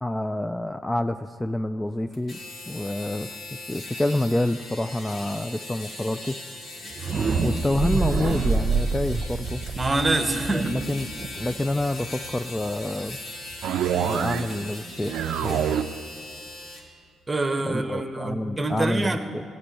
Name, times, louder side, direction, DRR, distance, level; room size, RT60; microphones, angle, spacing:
voice 1, 0.0-2.4 2.7-3.4 3.7-6.4 7.4-9.6 10.5-11.1 11.4-13.2 14.0-15.1 15.4-15.6 17.6-19.4, left 1 dB, 10° left, 10 dB, 0.3 m, -27 dB
sound 1, 2.1-16.8, left 2 dB, 55° left, 2.7 m, -40 dB
sound 2, 6.8-12.7, right 4 dB, 50° right, 0.7 m, -27 dB
voice 2, 9.7-10.7 17.3-19.2, right 2 dB, 20° right, 8 dB, 1.1 m, -25 dB
sound 3, 13.6-14.7 15.0-16.0, right 9 dB, 75° right, 0.4 m, -26 dB
15.5 x 5.4 x 9.8 m, 2.2 s
cardioid pair, 90°, 0 cm